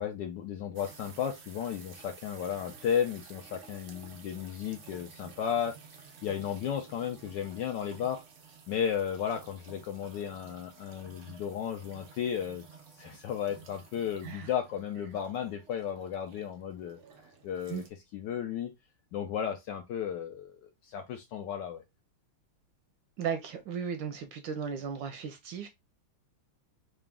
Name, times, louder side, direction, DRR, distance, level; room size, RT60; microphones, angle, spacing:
voice 1, 0.0-5.8 6.2-8.2 8.7-12.7 13.0-17.0 17.4-17.8 18.1-18.7 19.1-21.8, left 8 dB, 75° left, 1.0 m, -34 dB
sound 1, 0.7-17.9, right 5 dB, 90° right, 0.6 m, -53 dB
voice 2, 23.2-25.7, right 7 dB, 75° right, 1.1 m, -36 dB
3.9 x 2.3 x 3.4 m
omnidirectional pair, 2.3 m